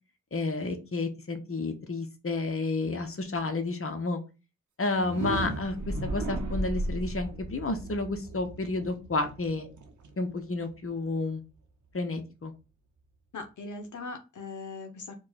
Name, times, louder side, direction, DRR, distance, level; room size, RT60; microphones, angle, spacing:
voice 1, 0.3-4.2 4.8-9.7 10.2-11.4 11.9-12.5, left 3 dB, 50° left, 6 dB, 1.0 m, -31 dB
sound 1, 4.9-10.8, right 1 dB, 85° right, 0.8 m, -35 dB
voice 2, 13.3-15.2, left 3 dB, 85° left, 5 dB, 0.7 m, -40 dB
4.6 x 2.3 x 4.2 m, 0.30 s
cardioid pair, 40°, 29 cm